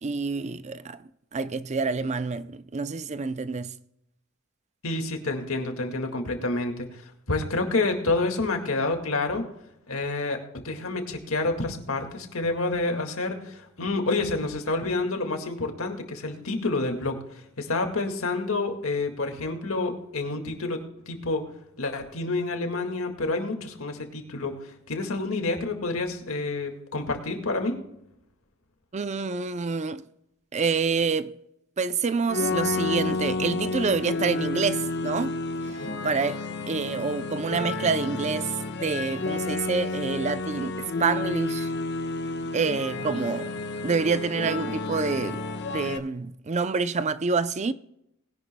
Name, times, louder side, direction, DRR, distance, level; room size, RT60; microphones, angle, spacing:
voice 1, 0.0-3.7 28.9-30.0 30.5-31.3 31.8-35.4 35.7-35.8 36.0-41.7 42.5-43.5 43.8-45.4 45.7-47.7, right 4 dB, 35° right, 0.5 m, -27 dB
voice 2, 4.8-9.4 9.9-20.8 21.1-21.4 21.8-27.8, left 3 dB, 75° left, 2.0 m, -28 dB
sound 1, 32.3-46.0, left 3 dB, 55° left, 1.1 m, -30 dB
20.0 x 11.0 x 2.2 m
head